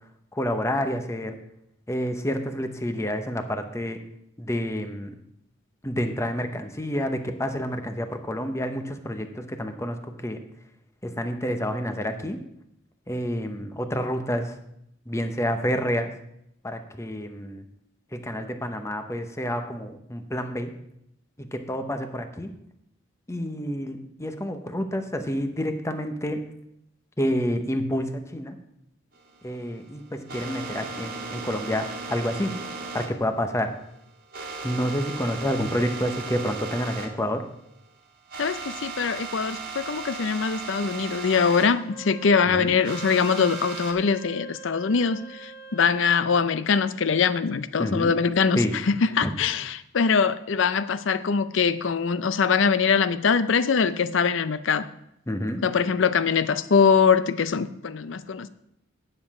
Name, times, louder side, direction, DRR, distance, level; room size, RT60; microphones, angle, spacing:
voice 1, 0.3-1.4 1.9-4.0 4.4-5.1 5.8-10.4 11.0-12.4 13.1-14.5 15.1-16.1 16.6-17.6 18.1-20.7 21.4-22.5 23.3-26.5 27.2-28.6 29.4-32.6 32.9-33.7 34.6-37.5 42.5-42.8 47.8-48.1 48.5-48.7 49.2-49.3 55.3-55.6, equal, 15° left, 7 dB, 0.9 m, -29 dB
sound 1, 29.1-37.1 37.4-37.5 37.9-38.0 38.3-41.7 42.8-43.9, right 4 dB, 50° right, 1.5 m, -37 dB
voice 2, 38.4-54.9 55.6-58.5, left 5 dB, 70° left, 14 dB, 0.5 m, -23 dB
Wind instrument woodwind instrument, 41.8-46.3, right 3 dB, 30° left, 1.5 m, -43 dB
9.6 x 7.6 x 4.8 m, 0.77 s
head